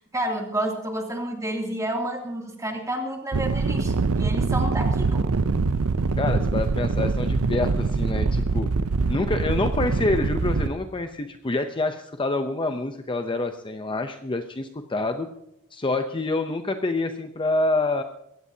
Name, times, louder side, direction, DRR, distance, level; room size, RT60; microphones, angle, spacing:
voice 1, 0.0-5.2, right 1 dB, 15° right, 1 dB, 2.6 m, -30 dB
sound 1, 3.3-10.7, right 4 dB, 70° right, 0.6 m, -24 dB
voice 2, 6.2-8.7 9.1-15.3 15.7-18.0, left 2 dB, 25° left, 7 dB, 0.6 m, -27 dB
22.0 x 16.0 x 2.8 m, 0.80 s
head